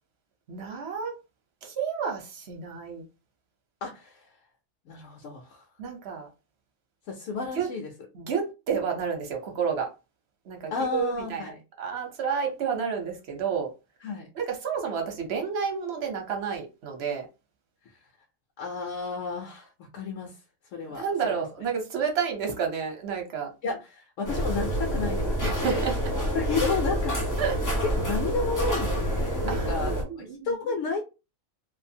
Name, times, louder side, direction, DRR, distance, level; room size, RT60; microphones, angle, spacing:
voice 1, 0.5-1.2 1.6-3.1 5.8-6.3 7.5-7.7 8.1-9.9 10.5-11.4 11.8-13.7 14.3-17.3 20.9-23.5 25.4-25.9 27.4-27.6 29.5-30.5, right 6 dB, 55° right, 0.9 m, -30 dB
voice 2, 3.8-4.3 4.9-5.6 7.1-7.9 10.7-11.6 14.0-14.3 18.6-20.4 20.7-21.4 23.6-25.8 26.3-27.4 27.8-31.0, left 4 dB, 70° left, 0.9 m, -32 dB
sound 1, 24.2-30.0, equal, 25° left, 0.4 m, -27 dB
2.5 x 2.4 x 2.7 m
omnidirectional pair, 1.4 m